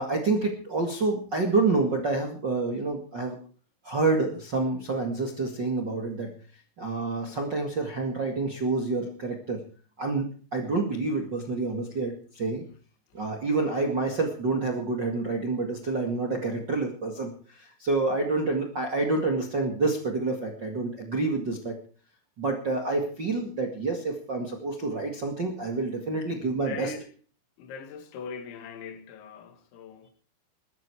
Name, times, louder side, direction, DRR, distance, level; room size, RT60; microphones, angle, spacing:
voice 1, 0.0-3.3 3.8-6.3 6.8-9.6 10.0-12.6 13.1-21.7 22.4-26.9, right 3 dB, 45° right, 1.5 m, -28 dB
voice 2, 26.6-27.1 27.6-30.1, left 5 dB, 80° left, 4.3 m, -40 dB
21.0 x 13.0 x 4.7 m
omnidirectional pair, 5.2 m